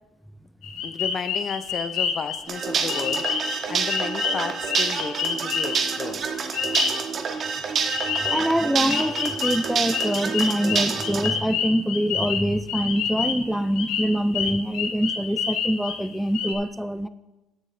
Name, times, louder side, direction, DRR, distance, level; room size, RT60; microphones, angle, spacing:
sound 1, 0.6-2.4 2.9-3.6 3.9-5.9 6.5-7.1 7.9-8.6 8.9-13.5 13.8-16.0 16.3-16.5, left 6 dB, 75° left, 1.2 m, -28 dB
voice 1, 0.8-6.2, left 6 dB, 40° left, 13 dB, 0.6 m, -33 dB
sound 2, 2.5-11.3, right 5 dB, 40° right, 1.2 m, -27 dB
voice 2, 8.3-17.1, equal, ahead, 12 dB, 0.4 m, -24 dB
16.5 x 6.4 x 3.3 m, 1.0 s
cardioid pair, 115°, 0 cm